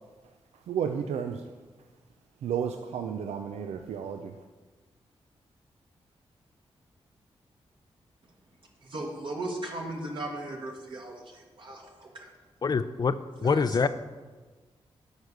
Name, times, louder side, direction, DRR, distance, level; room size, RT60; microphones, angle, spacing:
voice 1, 0.7-1.4 2.4-4.4, right 7 dB, 85° right, 6 dB, 0.4 m, -32 dB
voice 2, 8.8-12.3 13.4-13.9, right 2 dB, 50° right, -1 dB, 1.5 m, -37 dB
voice 3, 12.6-13.9, left 5 dB, 40° left, 14 dB, 0.4 m, -25 dB
8.1 x 4.8 x 6.6 m, 1.3 s
cardioid pair, 60°, 11 cm